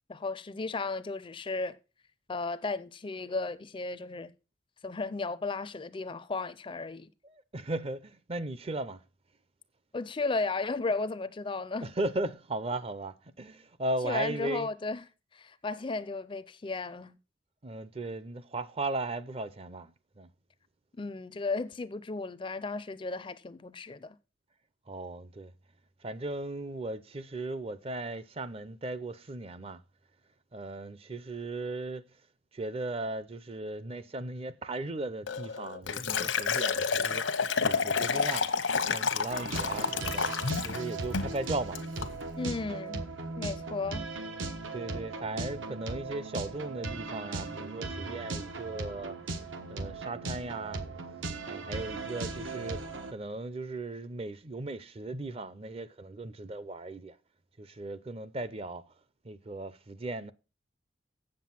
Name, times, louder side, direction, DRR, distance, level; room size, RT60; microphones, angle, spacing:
voice 1, 0.1-1.8 2.3-4.3 4.8-7.1 9.9-11.9 14.0-15.0 15.3-17.2 21.0-24.2 42.4-43.1 43.4-44.1, left 3 dB, 25° left, 0.4 m, -34 dB
voice 2, 7.2-9.0 11.8-14.7 17.6-19.9 20.2-20.3 24.9-25.5 26.0-29.8 30.5-32.0 32.5-37.3 37.6-38.5 38.9-40.3 40.6-41.8 44.7-49.2 49.7-50.8 51.5-57.2 57.6-58.8 59.2-60.3, right 2 dB, 30° right, 0.5 m, -37 dB
Liquid, 35.3-40.8 41.1-41.4 41.8-42.1, left 5 dB, 85° left, 1.0 m, -30 dB
sound 1, 39.3-53.1, right 3 dB, 85° right, 1.3 m, -38 dB
7.8 x 7.5 x 5.9 m
head